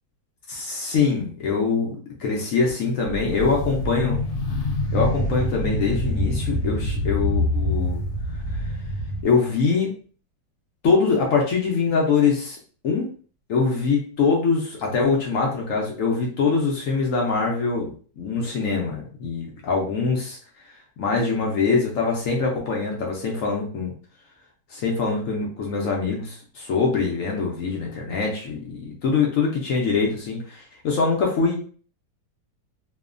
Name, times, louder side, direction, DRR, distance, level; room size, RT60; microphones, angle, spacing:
voice 1, 0.5-1.9 2.2-4.2 4.9-8.0 9.2-9.9 10.8-12.6 12.8-13.1 13.5-20.4 21.0-23.9 24.7-31.6, left 4 dB, 70° left, -1 dB, 0.8 m, -23 dB
sound 1, 3.0-9.2, left 1 dB, 90° left, 1.3 m, -25 dB
3.0 x 2.1 x 2.4 m, 0.42 s
omnidirectional pair, 1.9 m